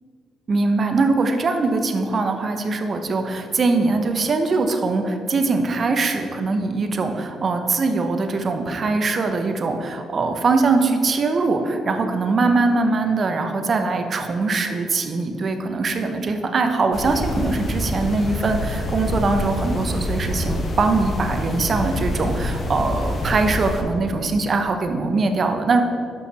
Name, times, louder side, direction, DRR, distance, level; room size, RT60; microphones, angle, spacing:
voice 1, 0.5-25.8, right 3 dB, 45° right, 6 dB, 0.8 m, -22 dB
sound 1, 16.9-23.8, left 1 dB, 45° left, 1.1 m, -26 dB
6.4 x 5.7 x 5.6 m, 2.3 s
cardioid pair, 90°, 0 cm